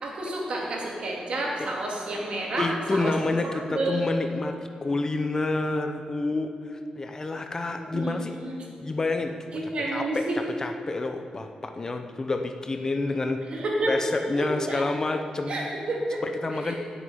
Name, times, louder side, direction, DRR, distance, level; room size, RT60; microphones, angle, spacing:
voice 1, 0.0-4.0 7.7-8.7 9.5-10.4 13.5-13.9 14.3-14.9 15.5-16.2 16.6-16.8, right 2 dB, 50° right, -2 dB, 2.6 m, -30 dB
voice 2, 2.6-8.3 8.8-9.3 9.9-13.4 13.9-15.7 16.2-16.7, left 2 dB, 25° left, 6 dB, 0.6 m, -28 dB
18.0 x 8.1 x 5.6 m, 2.4 s
wide cardioid pair, 165°, 2 cm